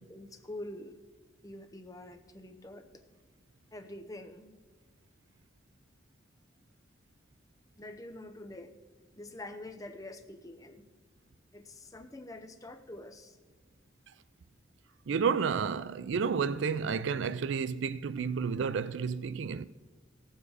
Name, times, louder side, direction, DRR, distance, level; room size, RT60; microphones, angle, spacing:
voice 1, 0.1-1.0 1.4-2.8 3.7-4.6 7.8-8.7 9.2-10.8 11.5-13.4, left 1 dB, 15° left, 0.7 m, -46 dB
voice 2, 15.1-19.7, right 6 dB, 70° right, 0.4 m, -31 dB
17.0 x 7.2 x 4.9 m
head